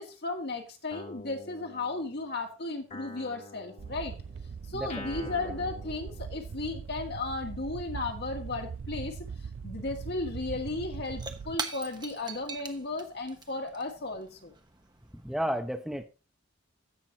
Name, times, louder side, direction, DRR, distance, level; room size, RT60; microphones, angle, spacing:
voice 1, 0.0-4.1 4.7-9.2 9.6-14.5, left 3 dB, 60° left, 3 dB, 2.1 m, -35 dB
Guitar, 0.9-2.4 2.9-6.8, left 2 dB, 35° left, 1.5 m, -47 dB
sound 1, 3.8-11.6, right 6 dB, 70° right, 0.4 m, -41 dB
voice 2, 4.7-5.1 15.1-16.0, equal, ahead, 6 dB, 0.7 m, -33 dB
Shatter / Crushing, 10.8-15.4, right 4 dB, 25° right, 1.0 m, -42 dB
16.0 x 6.1 x 2.9 m, 0.31 s
head